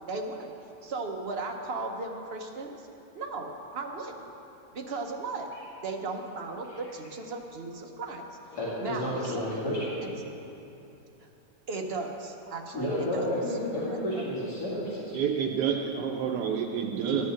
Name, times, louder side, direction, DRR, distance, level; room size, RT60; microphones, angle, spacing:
voice 1, 0.1-0.5 0.8-2.8 3.1-4.3 4.7-5.5 5.8-8.2 8.8-9.9 11.2-11.3 11.7-13.3 13.9-14.0 17.1-17.3, right 3 dB, 50° right, 3 dB, 0.8 m, -36 dB
voice 2, 8.5-10.0 12.7-15.2, left 1 dB, 70° left, -9 dB, 2.7 m, -31 dB
voice 3, 15.1-17.3, right 8 dB, 85° right, 0 dB, 1.2 m, -29 dB
11.5 x 5.5 x 7.4 m, 2.9 s
omnidirectional pair, 1.8 m